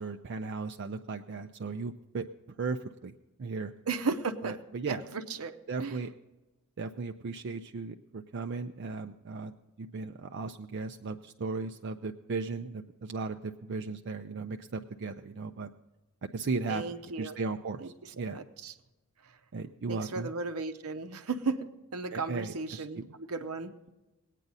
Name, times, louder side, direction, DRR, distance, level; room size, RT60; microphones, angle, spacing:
voice 1, 0.0-2.3 2.6-3.1 3.4-3.7 4.4-5.0 5.7-6.1 6.8-15.7 16.3-16.8 17.2-18.4 19.5-20.3 22.1-23.0, right 4 dB, 55° right, 5 dB, 0.5 m, -36 dB
voice 2, 3.9-4.6 4.9-5.5 5.8-6.0 16.7-17.4 17.8-18.7 19.9-23.7, right 4 dB, 80° right, 7 dB, 0.8 m, -35 dB
19.5 x 9.1 x 4.0 m, 1.1 s
head